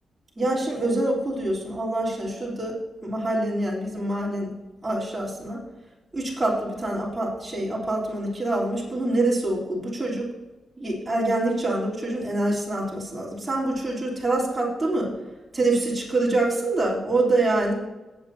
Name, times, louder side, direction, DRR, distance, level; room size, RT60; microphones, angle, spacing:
voice 1, 0.4-2.8 3.0-4.5 4.8-5.6 6.1-10.3 10.8-15.1 15.5-17.7, right 2 dB, 15° right, -6 dB, 3.4 m, -25 dB
17.5 x 8.5 x 2.8 m, 1.1 s
wide cardioid pair, 175°, 0 cm